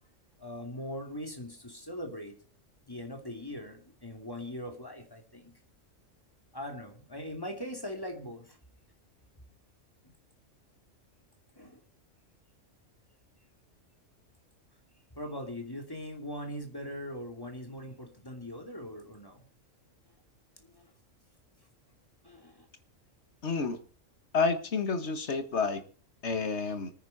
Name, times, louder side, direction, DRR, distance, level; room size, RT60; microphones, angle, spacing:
voice 1, 0.4-2.3 2.8-5.5 6.5-8.6 11.6-11.8 15.2-19.4 20.6-20.9 22.2-22.7, left 1 dB, 15° left, 3 dB, 2.7 m, -41 dB
voice 2, 23.4-23.8 24.3-25.8 26.2-26.9, left 4 dB, 60° left, 9 dB, 1.8 m, -29 dB
25.5 x 9.5 x 4.2 m, 0.40 s
omnidirectional pair, 1.3 m